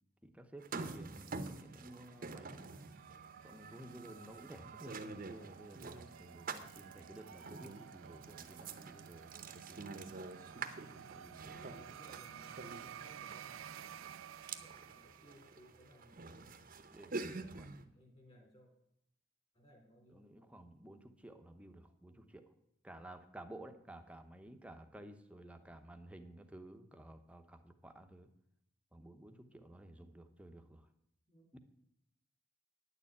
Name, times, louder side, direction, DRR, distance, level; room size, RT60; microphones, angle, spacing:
voice 1, 0.2-2.6 3.4-10.1 11.1-11.4 16.9-18.0 20.1-22.5 22.8-28.3 28.9-30.9 31.5-31.6, right 1 dB, 5° right, 6 dB, 0.8 m, -54 dB
sound 1, 0.6-17.8, right 4 dB, 45° right, 0.8 m, -48 dB
sound 2, 1.3-15.9, right 8 dB, 80° right, 0.4 m, -54 dB
voice 2, 11.4-14.1 14.6-16.6 17.1-18.7 19.5-20.5 23.6-23.8 25.5-26.0 29.5-29.8 31.3-31.6, equal, 25° left, 2 dB, 3.2 m, -63 dB
9.6 x 6.8 x 8.6 m, 0.78 s
head